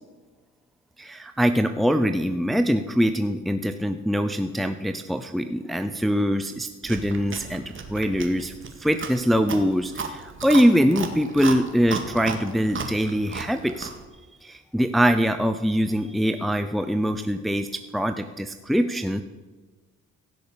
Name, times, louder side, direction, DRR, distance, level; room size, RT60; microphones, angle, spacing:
voice 1, 1.0-7.6 7.9-8.5 8.8-13.9 14.4-17.7 17.9-19.2, equal, ahead, 8 dB, 0.7 m, -23 dB
Chewing mastication, 6.8-14.0, right 5 dB, 40° right, 2.1 m, -35 dB
16.0 x 6.5 x 8.7 m, 1.3 s
cardioid pair, 90°, 30 cm